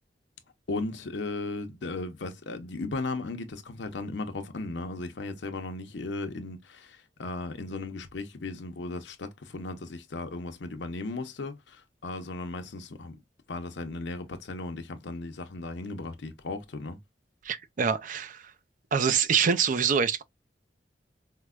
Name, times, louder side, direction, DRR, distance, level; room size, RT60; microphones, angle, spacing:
voice 1, 0.7-13.2 13.5-17.0, left 3 dB, 80° left, 0.7 m, -36 dB
voice 2, 17.4-18.5 18.9-20.2, right 6 dB, 45° right, 0.4 m, -25 dB
4.5 x 2.1 x 2.3 m
head